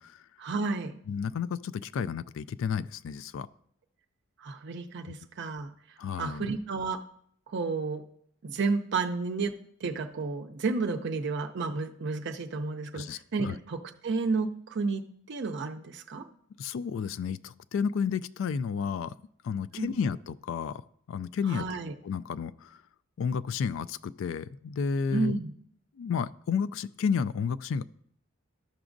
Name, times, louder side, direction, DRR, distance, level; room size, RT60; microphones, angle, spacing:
voice 1, 0.4-0.9 4.4-5.7 6.2-7.0 7.5-8.0 8.4-9.5 9.8-16.2 19.8-20.0 21.5-21.9 25.1-25.5, right 4 dB, 55° right, 6 dB, 0.5 m, -31 dB
voice 2, 1.1-3.5 6.0-6.5 12.9-13.6 16.6-19.1 19.4-20.8 21.1-21.7 22.0-22.8 23.2-25.4 26.0-27.8, left 6 dB, 65° left, 16 dB, 0.3 m, -31 dB
12.5 x 6.0 x 2.6 m, 0.65 s
head